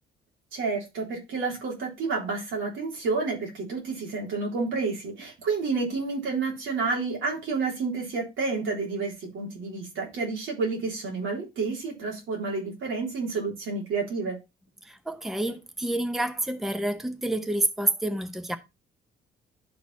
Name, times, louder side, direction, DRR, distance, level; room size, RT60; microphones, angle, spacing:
voice 1, 0.5-14.4, right 4 dB, 80° right, 3.6 m, -30 dB
voice 2, 14.8-18.6, right 1 dB, ahead, 0.8 m, -28 dB
11.5 x 4.0 x 4.2 m
cardioid pair, 90°, 20 cm